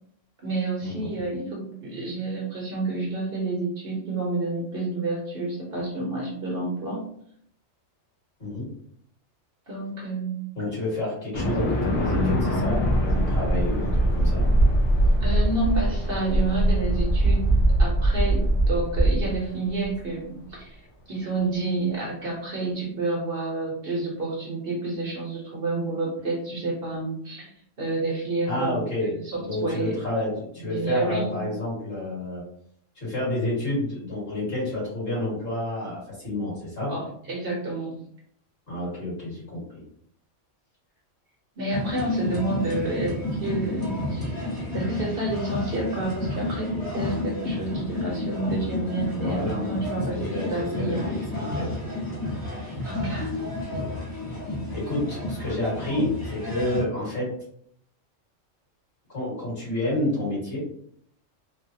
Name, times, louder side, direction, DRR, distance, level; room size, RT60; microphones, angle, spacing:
voice 1, 0.4-7.0 9.7-10.3 15.2-20.8 21.1-27.5 27.8-30.0 30.6-31.4 36.9-38.0 41.6-44.3 44.7-51.1 52.8-53.4, right 2 dB, 55° right, -3 dB, 0.9 m, -29 dB
voice 2, 10.6-14.4 28.5-29.1 29.4-32.4 33.0-36.9 38.7-39.6 49.1-49.7 50.2-51.2 51.5-51.7 54.7-57.3 59.1-60.6, left 1 dB, 50° left, -7 dB, 1.9 m, -29 dB
sound 1, 11.3-19.8, right 1 dB, 70° left, 1.1 m, -22 dB
sound 2, 41.7-56.8, left 1 dB, 20° left, 0.7 m, -31 dB
3.2 x 2.2 x 2.7 m, 0.67 s
omnidirectional pair, 1.3 m